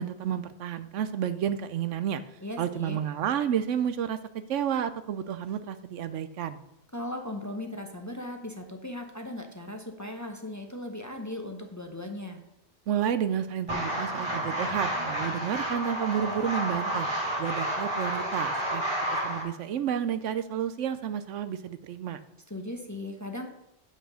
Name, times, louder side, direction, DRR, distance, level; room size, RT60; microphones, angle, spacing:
voice 1, 0.0-2.2 2.6-6.6 12.9-17.1 17.4-18.8 19.2-22.2, right 9 dB, 75° right, 12 dB, 0.9 m, -31 dB
voice 2, 2.4-3.0 6.9-12.4 22.5-23.5, left 1 dB, 15° left, 4 dB, 0.8 m, -37 dB
sound 1, 13.7-19.4, right 1 dB, 20° right, 3.0 m, -30 dB
8.6 x 5.5 x 6.2 m, 0.81 s
omnidirectional pair, 1.3 m